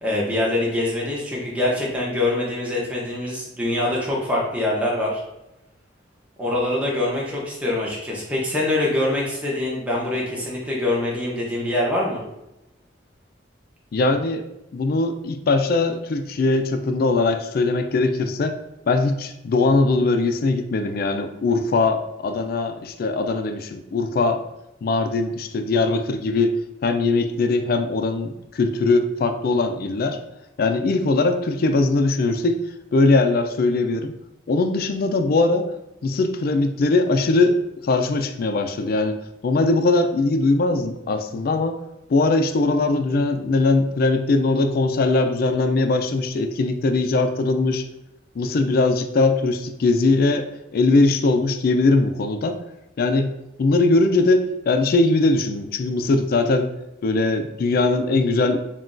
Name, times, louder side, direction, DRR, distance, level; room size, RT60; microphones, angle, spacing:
voice 1, 0.0-5.2 6.4-12.2, left 1 dB, 5° right, -4 dB, 0.8 m, -24 dB
voice 2, 13.9-14.4 14.7-18.6 18.9-24.4 24.8-26.5 26.8-30.2 30.6-32.6 32.9-34.1 34.5-35.7 36.0-39.2 39.4-41.8 42.1-47.8 48.4-52.6 53.0-53.3 53.6-56.7 57.0-58.6, left 3 dB, 50° left, 7 dB, 0.3 m, -20 dB
5.7 x 2.3 x 2.5 m, 0.90 s
head